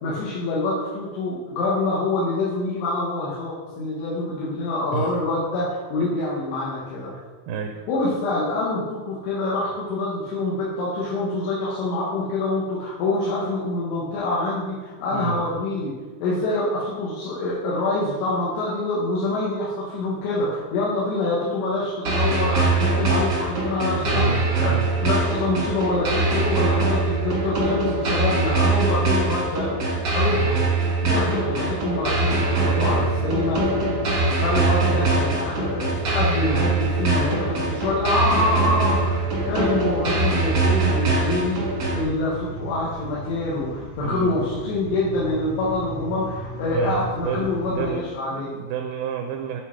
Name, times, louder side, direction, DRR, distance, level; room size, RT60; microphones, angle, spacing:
voice 1, 0.0-7.1 7.9-15.9 16.2-24.7 25.0-29.7 30.1-30.6 31.0-33.7 34.4-41.6 41.9-48.5, left 2 dB, 85° left, -8 dB, 3.4 m, -26 dB
voice 2, 7.1-7.8 15.1-15.4 24.0-24.9 30.3-30.5 44.0-44.4 46.7-49.6, right 7 dB, 85° right, 4 dB, 2.1 m, -30 dB
sound 1, 22.0-42.0, right 3 dB, 55° right, 1.1 m, -22 dB
sound 2, 22.9-38.9, left 1 dB, 30° left, 0.6 m, -40 dB
sound 3, 32.1-47.9, equal, 55° left, 1.5 m, -38 dB
8.9 x 4.2 x 4.5 m, 1.4 s
omnidirectional pair, 4.8 m